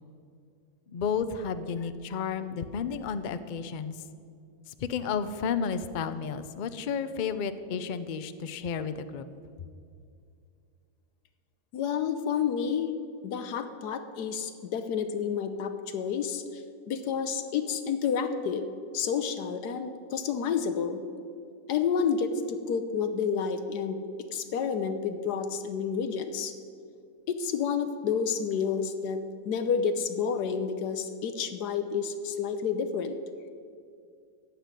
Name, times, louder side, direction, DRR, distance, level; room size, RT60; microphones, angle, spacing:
voice 1, 0.9-4.0 4.7-9.3, left 6 dB, 60° left, 11 dB, 0.5 m, -32 dB
voice 2, 11.7-13.0 13.2-18.7 18.9-21.0 21.7-24.0 24.3-26.5 27.3-33.1, left 6 dB, 90° left, 8 dB, 1.3 m, -30 dB
15.0 x 6.1 x 9.7 m, 2.4 s
omnidirectional pair, 1.7 m